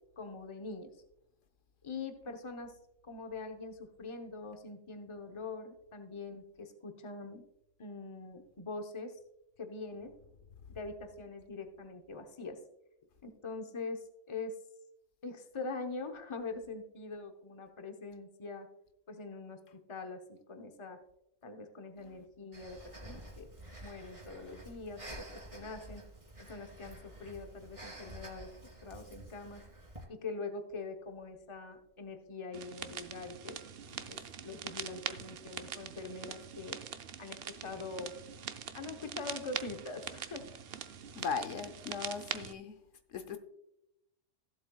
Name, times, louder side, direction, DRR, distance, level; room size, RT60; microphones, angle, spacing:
voice 1, 0.2-0.9 1.8-2.7 3.0-7.4 7.8-9.2 9.6-10.2 10.7-12.6 13.2-14.6 15.2-18.7 19.1-21.0 21.4-23.5 23.8-26.1 26.4-28.5 28.8-29.6 30.1-33.6 34.1-36.8 37.2-38.1 38.7-40.5, left 3 dB, 25° left, 0.9 m, -43 dB
Breathing, 22.5-30.0, right 1 dB, 25° right, 2.3 m, -50 dB
sound 1, 32.5-42.5, right 8 dB, 60° right, 0.7 m, -43 dB
voice 2, 41.1-42.8 43.1-43.4, left 5 dB, 80° left, 1.2 m, -38 dB
16.0 x 7.8 x 2.3 m
omnidirectional pair, 1.3 m